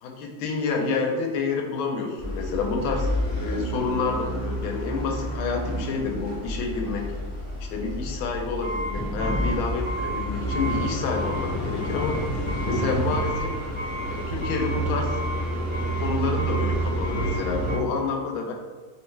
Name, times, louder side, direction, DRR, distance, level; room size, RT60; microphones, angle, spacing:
voice 1, 0.0-3.1 3.4-7.1 7.7-12.2 12.6-13.5 14.1-15.3 15.9-18.5, left 4 dB, 90° left, 2 dB, 1.4 m, -28 dB
sound 1, 2.2-17.8, right 1 dB, 10° left, 0.9 m, -29 dB
3.4 x 3.1 x 3.2 m, 1.5 s
omnidirectional pair, 2.2 m